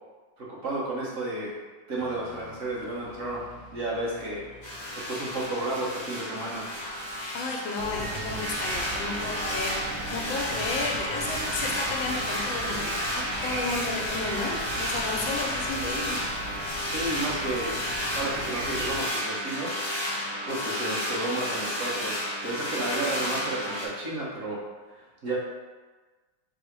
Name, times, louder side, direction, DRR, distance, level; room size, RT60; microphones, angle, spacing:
voice 1, 0.4-1.6 1.9-3.4 3.7-4.4 4.9-6.7 16.8-17.8 18.1-19.7 20.5-24.6 24.9-25.4, right 2 dB, 45° right, -5 dB, 1.1 m, -32 dB
Dog, 1.9-7.6, left 1 dB, 70° left, 1.2 m, -49 dB
sound 1, 4.6-23.9, left 1 dB, 40° left, 0.4 m, -32 dB
voice 2, 7.3-16.2, left 3 dB, 85° left, 0 dB, 1.4 m, -33 dB
sound 2, 7.8-19.0, right 2 dB, 75° right, 1.2 m, -38 dB
4.8 x 2.0 x 4.4 m, 1.3 s
omnidirectional pair, 2.1 m